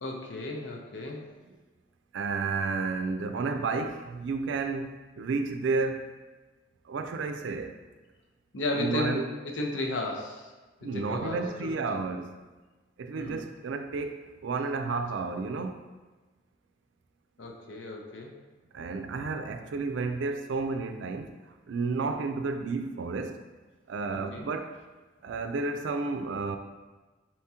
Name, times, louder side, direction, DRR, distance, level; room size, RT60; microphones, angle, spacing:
voice 1, 0.0-1.3 8.5-10.5 10.8-12.0 13.1-13.5 17.4-18.3 24.1-24.5, left 2 dB, 90° left, 1 dB, 0.7 m, -34 dB
voice 2, 2.1-6.0 6.9-7.8 8.7-9.2 10.8-12.3 13.0-15.8 18.7-21.3 21.7-23.4 23.9-24.8 25.2-26.6, right 4 dB, 80° right, 7 dB, 0.4 m, -31 dB
4.3 x 3.5 x 2.8 m, 1.2 s
head